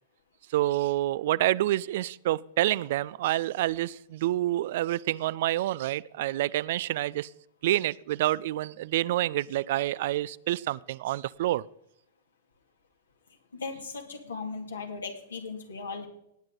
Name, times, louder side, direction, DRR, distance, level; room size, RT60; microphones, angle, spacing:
voice 1, 0.5-7.3 7.6-11.6, right 15 dB, 55° right, 0.3 m, -28 dB
voice 2, 13.5-16.1, left 4 dB, 75° left, 2.3 m, -37 dB
19.0 x 8.9 x 3.9 m
figure-of-eight pair, 100°, 0 cm